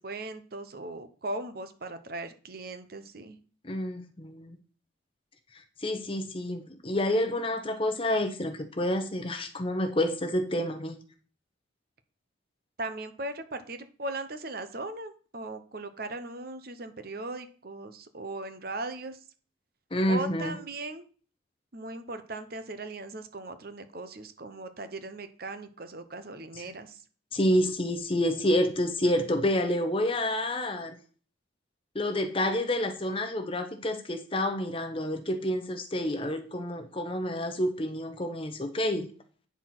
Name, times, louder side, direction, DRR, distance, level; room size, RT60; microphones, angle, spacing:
voice 1, 0.0-3.4 12.8-19.2 20.1-21.1 21.7-27.0, right 2 dB, 50° right, 10 dB, 0.9 m, -38 dB
voice 2, 3.6-4.6 5.8-11.0 19.9-20.6 27.3-31.0 31.9-39.1, left 1 dB, 25° left, 6 dB, 0.9 m, -28 dB
9.5 x 4.4 x 6.0 m, 0.40 s
head